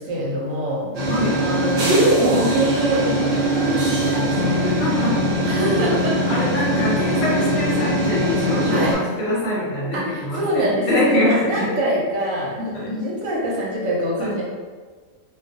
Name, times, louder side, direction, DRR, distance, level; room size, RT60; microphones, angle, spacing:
voice 1, 0.0-0.9 1.4-4.6 5.4-6.2 8.7-9.0 9.9-14.4, right 1 dB, 80° right, -4 dB, 1.1 m, -24 dB
voice 2, 0.8-1.4 4.6-5.2 6.3-11.7 12.7-12.9 14.2-14.4, left 1 dB, 60° left, -5 dB, 0.8 m, -24 dB
sound 1, 0.9-8.9, right 1 dB, 60° right, 0.8 m, -21 dB
2.3 x 2.2 x 2.6 m, 1.5 s
omnidirectional pair, 1.4 m